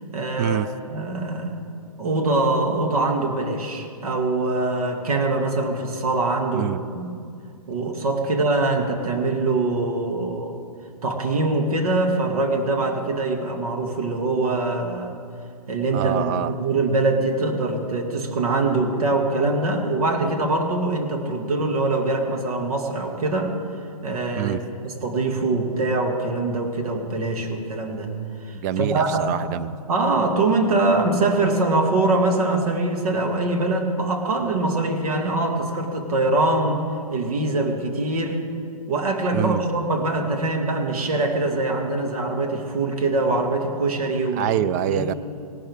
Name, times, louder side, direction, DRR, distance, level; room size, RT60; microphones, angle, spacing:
voice 1, 0.1-0.6 0.9-1.5 2.0-7.1 7.7-10.6 11.0-15.1 15.7-23.6 24.0-28.1 28.4-29.2 29.9-36.8 37.1-38.4 38.9-45.1, right 2 dB, 65° right, 3 dB, 2.2 m, -23 dB
voice 2, 15.9-16.5 24.4-24.6 28.6-29.7 39.3-39.6 44.4-45.1, right 10 dB, 30° right, 14 dB, 0.4 m, -25 dB
18.0 x 11.5 x 3.6 m, 2.3 s
hypercardioid pair, 135°, 20 cm